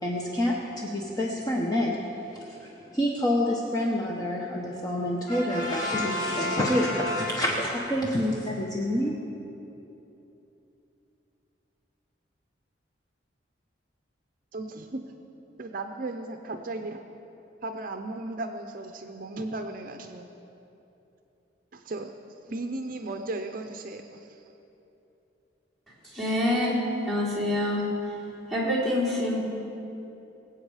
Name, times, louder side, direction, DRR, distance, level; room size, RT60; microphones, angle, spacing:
voice 1, 0.0-2.0 2.3-9.1, left 1 dB, 20° left, -2 dB, 0.9 m, -28 dB
Brass instrument, 5.3-7.9, left 1 dB, 45° left, 2.9 m, -32 dB
voice 2, 14.5-15.0 15.6-17.0 17.6-20.3 21.7-22.1 22.5-24.5, right 2 dB, 50° right, 6 dB, 0.6 m, -36 dB
voice 3, 26.0-27.8 28.5-29.4, left 1 dB, 5° left, -9 dB, 3.7 m, -26 dB
23.0 x 8.0 x 5.0 m, 2.9 s
head